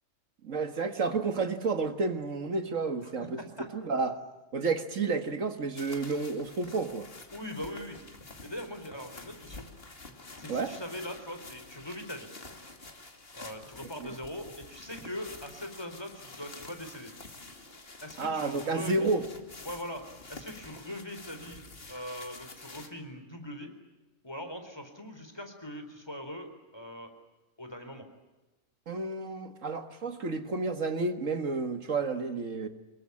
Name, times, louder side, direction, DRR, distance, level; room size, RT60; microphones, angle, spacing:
voice 1, 0.4-3.4 3.7-4.2 4.5-7.1 10.5-10.7 14.0-14.2 18.2-19.2 28.9-32.7, right 3 dB, 70° right, 9 dB, 2.0 m, -31 dB
voice 2, 3.4-3.7 7.3-8.0 8.4-9.6 10.4-12.3 13.3-17.1 18.0-19.3 19.6-20.0 20.3-23.7 24.2-27.1 27.6-28.1, left 1 dB, 20° left, 6 dB, 4.2 m, -41 dB
sound 1, 5.8-22.9, left 2 dB, 45° left, 2.7 m, -48 dB
26.0 x 22.5 x 8.6 m, 1.1 s
omnidirectional pair, 1.4 m